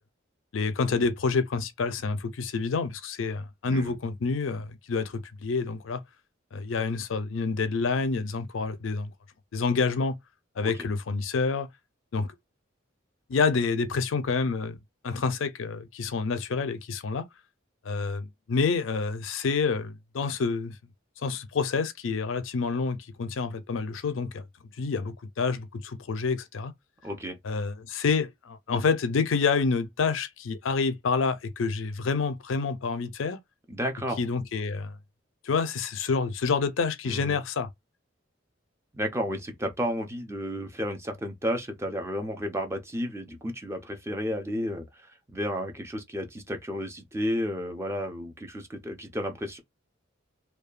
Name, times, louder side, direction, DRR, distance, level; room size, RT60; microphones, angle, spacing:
voice 1, 0.5-6.0 6.5-9.1 9.5-10.2 10.6-11.7 12.1-12.3 13.3-14.8 15.0-17.3 17.8-20.7 21.2-24.4 24.8-26.7 27.4-33.4 34.2-35.0 35.4-37.7, left 4 dB, 85° left, 0.5 m, -28 dB
voice 2, 3.6-4.0 10.6-10.9 27.0-27.4 33.7-34.2 37.0-37.4 38.9-49.6, equal, 15° right, 0.5 m, -32 dB
2.7 x 2.2 x 2.4 m
head